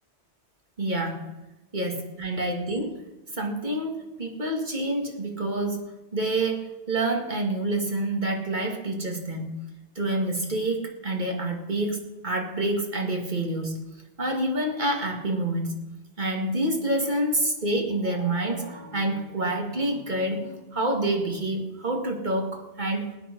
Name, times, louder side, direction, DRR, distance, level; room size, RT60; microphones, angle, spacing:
voice 1, 0.8-1.3 1.7-3.0 3.4-9.6 10.0-13.8 14.2-15.7 16.2-23.1, right 1 dB, 40° right, 2 dB, 2.4 m, -27 dB
19.0 x 9.4 x 5.4 m, 1.1 s
omnidirectional pair, 1.2 m